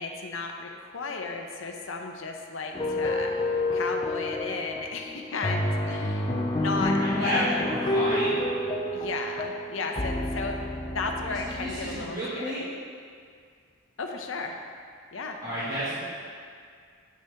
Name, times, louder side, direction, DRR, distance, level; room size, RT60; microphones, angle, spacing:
voice 1, 0.0-7.7 8.9-10.6 10.9-12.7 14.0-14.6 15.1-15.4, left 4 dB, 75° left, 3 dB, 0.7 m, -34 dB
sound 1, 2.7-12.1, left 1 dB, 25° left, 0.4 m, -29 dB
voice 2, 6.9-8.4 11.6-12.7 15.4-16.1, equal, 35° right, -13 dB, 1.9 m, -31 dB
8.6 x 5.7 x 3.4 m, 2.1 s
head